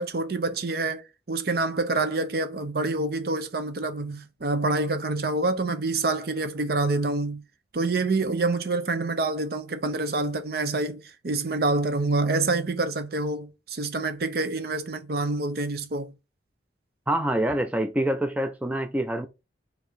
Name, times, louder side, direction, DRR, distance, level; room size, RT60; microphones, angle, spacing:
voice 1, 0.0-7.4 7.7-16.1, right 3 dB, 55° right, 0.7 m, -27 dB
voice 2, 17.1-19.3, right 1 dB, 10° right, 0.4 m, -26 dB
4.7 x 2.7 x 4.2 m
head